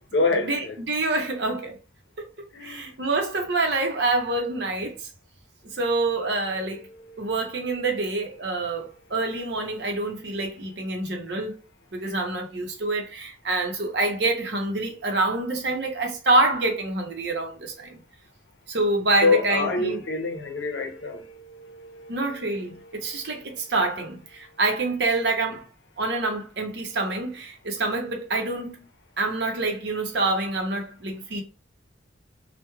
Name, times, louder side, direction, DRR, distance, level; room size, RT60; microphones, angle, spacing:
voice 1, 0.1-0.8 2.5-3.0 6.5-9.1 12.0-12.2 19.2-23.7 24.4-24.6, left 3 dB, 70° left, 0.7 m, -29 dB
voice 2, 0.9-1.8 2.2-5.1 5.8-6.8 7.2-11.5 11.9-18.0 18.7-20.0 22.1-25.7 26.0-28.8 29.2-31.4, right 2 dB, 65° right, 0.7 m, -26 dB
3.0 x 2.2 x 2.2 m
head